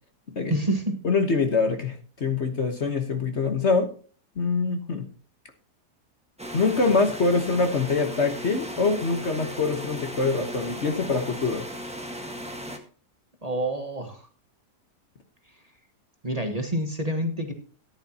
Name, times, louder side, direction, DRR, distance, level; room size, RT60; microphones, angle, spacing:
voice 1, 0.5-1.0 13.4-14.2 16.2-17.5, right 1 dB, 25° right, 4 dB, 1.4 m, -27 dB
voice 2, 1.0-3.9 4.4-5.1 6.5-11.6, left 4 dB, 45° left, 6 dB, 1.4 m, -24 dB
sound 1, 6.4-12.8, equal, 5° right, 1.3 m, -36 dB
13.5 x 10.5 x 2.9 m, 0.40 s
omnidirectional pair, 1.8 m